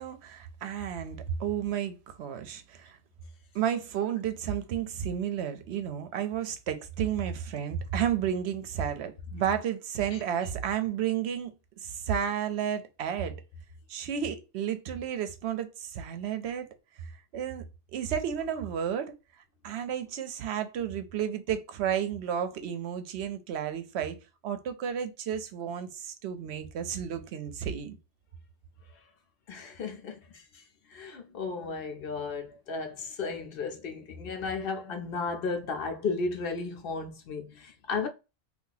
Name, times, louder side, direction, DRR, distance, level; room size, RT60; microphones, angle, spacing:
voice 1, 0.0-3.0 3.5-11.5 11.8-13.3 13.9-16.7 17.0-17.6 17.9-19.1 19.6-24.2 24.4-28.0, right 9 dB, 75° right, 0.8 m, -32 dB
voice 2, 29.5-30.6 30.9-38.1, left 4 dB, 60° left, 0.8 m, -34 dB
2.7 x 2.4 x 3.8 m
omnidirectional pair, 1.1 m